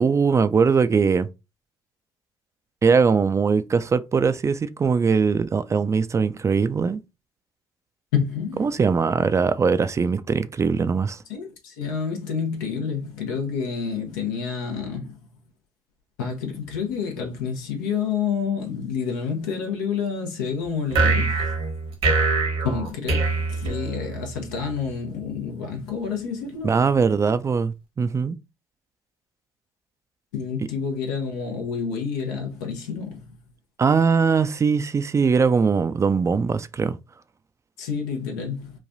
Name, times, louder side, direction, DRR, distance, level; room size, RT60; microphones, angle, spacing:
voice 1, 0.0-1.3 2.8-7.0 8.6-11.2 26.6-28.4 33.8-37.0, right 5 dB, 30° right, 0.3 m, -21 dB
voice 2, 8.1-8.6 11.3-15.2 16.2-21.5 22.6-26.8 30.3-33.3 37.8-38.7, left 6 dB, 85° left, 0.7 m, -28 dB
sound 1, 20.9-24.3, right 3 dB, 70° right, 1.1 m, -23 dB
3.2 x 2.2 x 2.5 m
hypercardioid pair, 55°, 10 cm